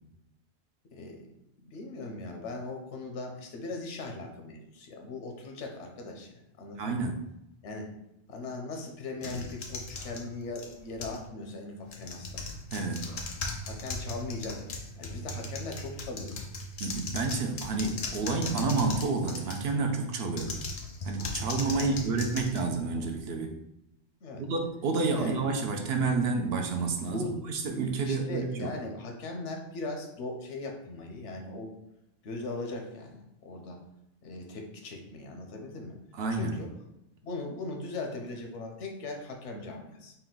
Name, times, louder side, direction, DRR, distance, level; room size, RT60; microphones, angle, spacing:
voice 1, 0.9-1.3 1.6-7.0 7.6-7.9 8.3-12.4 13.7-14.6 15.0-16.4 21.7-22.0 24.2-24.4 25.2-25.4 27.1-27.4 28.0-31.8 32.2-33.8 34.2-36.0 36.4-36.7 37.2-40.1, left 2 dB, 80° left, 2 dB, 1.0 m, -39 dB
voice 2, 6.8-7.1 12.7-13.1 16.8-20.5 21.0-23.5 24.4-28.7 36.1-36.6, right 4 dB, 65° right, 3 dB, 0.7 m, -29 dB
sound 1, 9.2-11.3 11.8-19.8 20.3-23.2, left 2 dB, 55° left, 0.6 m, -38 dB
4.1 x 2.3 x 3.8 m, 0.84 s
omnidirectional pair, 1.2 m